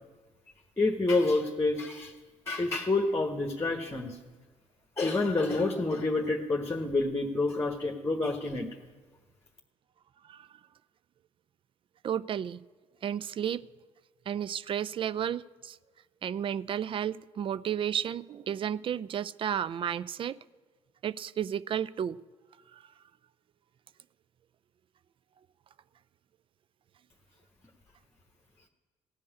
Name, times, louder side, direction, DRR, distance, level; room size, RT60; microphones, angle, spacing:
voice 1, 0.8-2.1 2.5-4.2 5.0-8.7, left 2 dB, 15° left, 4 dB, 1.3 m, -28 dB
voice 2, 12.0-12.6 13.0-13.6 14.3-15.8 16.2-20.4 21.0-22.2, right 9 dB, 35° right, 18 dB, 0.4 m, -32 dB
15.5 x 5.4 x 9.9 m, 1.3 s
figure-of-eight pair, 50°, 15 cm